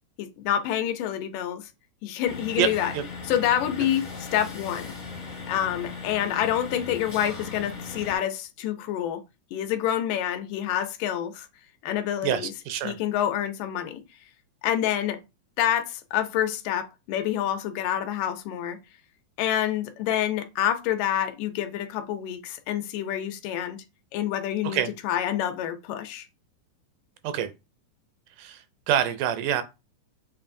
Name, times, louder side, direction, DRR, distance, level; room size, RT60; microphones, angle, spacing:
voice 1, 0.2-1.7 2.0-2.9 3.3-4.9 5.5-9.2 9.5-11.5 11.8-12.5 12.8-14.0 14.6-15.2 15.6-18.8 19.4-23.8 24.1-26.3, left 11 dB, 80° left, 2.2 m, -27 dB
sound 1, 2.2-8.2, left 4 dB, 55° left, 0.7 m, -38 dB
voice 2, 2.6-3.0 12.2-13.0 24.6-24.9 27.2-27.5 28.4-29.6, right 9 dB, 80° right, 2.0 m, -26 dB
6.7 x 2.9 x 2.6 m
omnidirectional pair, 3.8 m